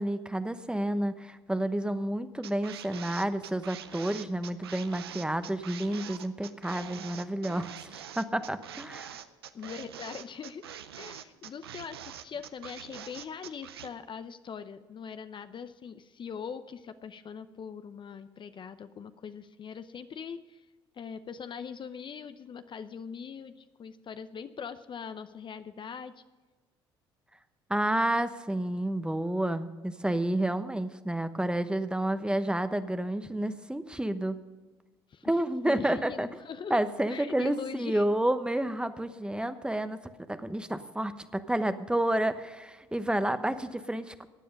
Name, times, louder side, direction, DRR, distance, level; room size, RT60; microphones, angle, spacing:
voice 1, 0.0-9.2 27.7-34.4 35.2-36.3 36.7-44.3, right 1 dB, 5° right, 11 dB, 1.0 m, -30 dB
sound 1, 2.4-13.9, right 9 dB, 90° right, 0.6 m, -44 dB
voice 2, 9.5-10.6 11.0-20.6 21.0-26.1 35.1-35.3 35.7-36.8 37.1-38.0, left 6 dB, 40° left, 11 dB, 0.7 m, -42 dB
15.5 x 10.0 x 5.3 m, 1.3 s
hypercardioid pair, 60°, 12 cm